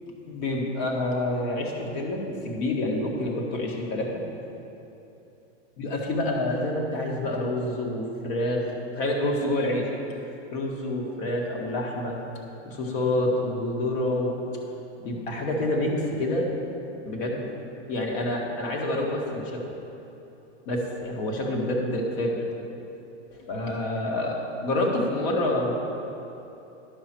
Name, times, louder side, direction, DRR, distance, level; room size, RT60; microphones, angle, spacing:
voice 1, 0.2-4.1 5.8-8.6 8.9-9.9 10.5-12.2 12.7-14.4 15.0-16.5 17.1-17.5 17.9-19.6 20.7-22.4 23.5-25.7, left 1 dB, 60° left, -1 dB, 1.8 m, -27 dB
11.0 x 5.7 x 4.5 m, 3.0 s
supercardioid pair, 140°, 37 cm